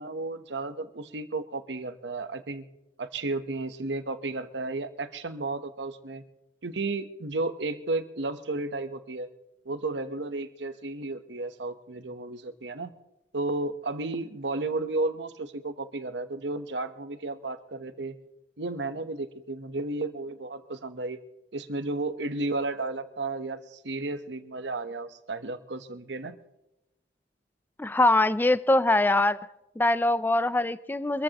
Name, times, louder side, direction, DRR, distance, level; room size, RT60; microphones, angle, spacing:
voice 1, 0.0-2.7 3.0-6.2 6.6-9.3 9.6-12.9 13.3-18.2 18.6-21.2 21.5-26.4, right 2 dB, 85° right, 10 dB, 1.0 m, -33 dB
voice 2, 27.8-29.4 29.8-31.2, left 2 dB, 10° left, 15 dB, 0.4 m, -23 dB
24.5 x 14.0 x 3.0 m, 0.93 s
head